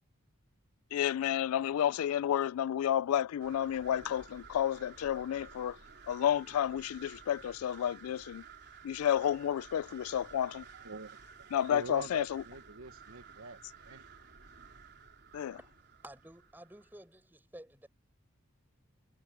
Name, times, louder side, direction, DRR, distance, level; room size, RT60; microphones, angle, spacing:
voice 1, 0.9-5.8 6.1-8.4 8.8-10.6 11.5-12.4 15.3-15.6, left 10 dB, 90° left, 0.3 m, -31 dB
sound 1, 3.4-17.0, right 5 dB, 50° right, 3.9 m, -54 dB
voice 2, 10.7-11.2 11.7-13.6 13.8-14.1, right 3 dB, 80° right, 1.4 m, -44 dB
voice 3, 16.0-17.9, right 1 dB, 10° right, 5.5 m, -52 dB
head